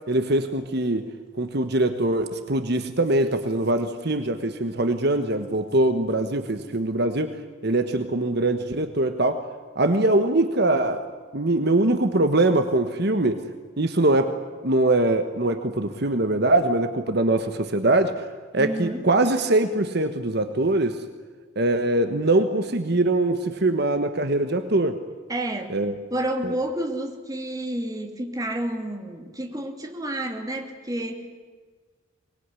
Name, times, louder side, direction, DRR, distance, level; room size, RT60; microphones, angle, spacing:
voice 1, 0.1-1.1 1.4-7.3 7.6-9.4 9.7-11.0 11.3-13.4 13.8-14.4 14.6-18.1 18.5-21.0 21.6-25.0 25.7-25.9 26.4-26.5, right 2 dB, 55° right, 8 dB, 1.4 m, -22 dB
voice 2, 18.6-19.1 25.3-25.8 26.1-31.3, right 1 dB, 20° right, 3 dB, 2.7 m, -30 dB
24.0 x 20.5 x 9.8 m, 1.5 s
head